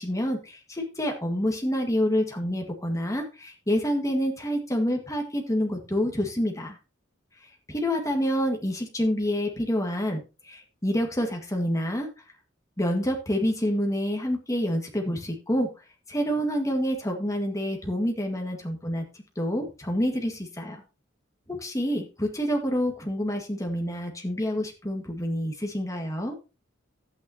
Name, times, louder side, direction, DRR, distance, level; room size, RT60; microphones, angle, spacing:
voice 1, 0.0-6.8 7.7-12.1 12.8-15.7 16.1-20.8 21.5-26.4, equal, 15° left, 2 dB, 1.8 m, -27 dB
12.0 x 8.6 x 2.9 m, 0.29 s
head